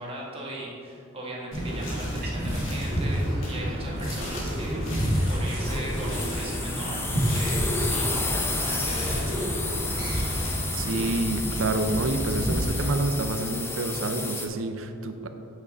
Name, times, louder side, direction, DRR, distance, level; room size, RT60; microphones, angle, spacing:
voice 1, 0.0-9.5, right 1 dB, 30° right, -4 dB, 1.4 m, -38 dB
sound 1, 1.5-12.9, equal, 65° left, 1.8 m, -29 dB
sound 2, 1.7-11.1, equal, 45° right, 1.4 m, -38 dB
sound 3, 5.6-14.5, left 3 dB, 10° left, 0.5 m, -32 dB
voice 2, 10.7-15.3, right 2 dB, 70° right, 7 dB, 0.6 m, -28 dB
8.1 x 6.1 x 4.0 m, 2.6 s
head